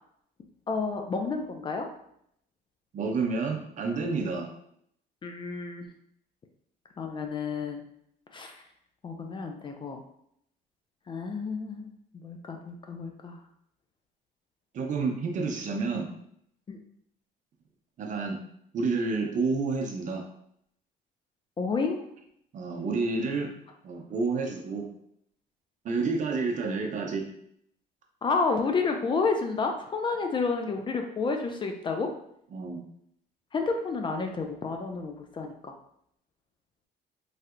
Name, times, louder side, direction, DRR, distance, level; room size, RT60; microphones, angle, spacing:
voice 1, 0.7-1.9 5.2-5.9 7.0-7.8 8.3-8.6 9.0-10.0 11.1-11.9 12.2-13.4 16.7-16.8 21.6-22.0 28.2-32.1 33.5-35.7, left 4 dB, 30° left, 4 dB, 0.4 m, -30 dB
voice 2, 2.9-4.5 14.7-16.1 18.0-18.4 18.7-20.2 22.5-23.5 23.8-24.9 25.8-27.3 32.5-32.8, right 4 dB, 50° right, 2 dB, 0.6 m, -29 dB
3.3 x 2.7 x 2.4 m, 0.72 s
cardioid pair, 110°, 17 cm